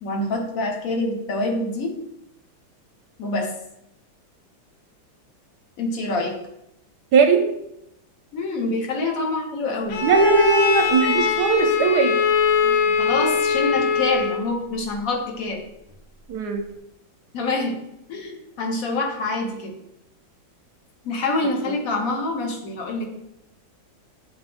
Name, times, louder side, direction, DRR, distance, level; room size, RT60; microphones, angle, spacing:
voice 1, 0.0-1.9 3.2-3.5 5.8-6.4 8.3-10.0 12.6-15.6 17.3-17.8 18.1-19.7 21.0-23.1, left 2 dB, 50° left, 2 dB, 1.3 m, -26 dB
voice 2, 7.1-7.4 10.0-12.2 16.3-16.6, right 5 dB, 70° right, 5 dB, 1.0 m, -18 dB
Bowed string instrument, 9.9-14.5, left 6 dB, 85° left, 1.6 m, -21 dB
8.0 x 3.6 x 3.5 m, 0.83 s
omnidirectional pair, 2.1 m